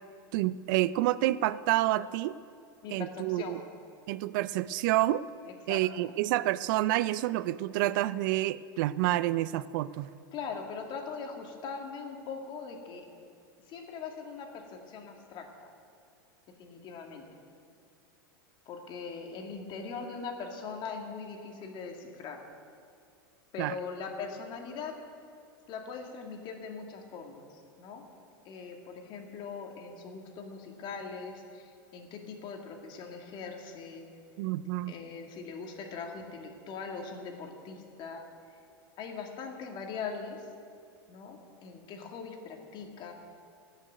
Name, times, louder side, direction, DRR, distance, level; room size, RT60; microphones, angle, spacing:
voice 1, 0.3-2.3 2.9-3.6 4.1-5.2 5.7-10.1 23.6-23.7 34.4-35.0, right 16 dB, 60° right, 17 dB, 0.4 m, -28 dB
voice 2, 2.8-3.7 5.4-6.2 10.3-13.1 13.7-15.7 16.6-17.3 18.7-22.5 23.5-25.1 25.7-28.1 28.4-34.1 34.9-38.3 39.0-40.5 41.1-43.1, left 5 dB, 40° left, 2 dB, 2.3 m, -41 dB
15.5 x 6.5 x 9.1 m, 2.3 s
hypercardioid pair, 115°, 12 cm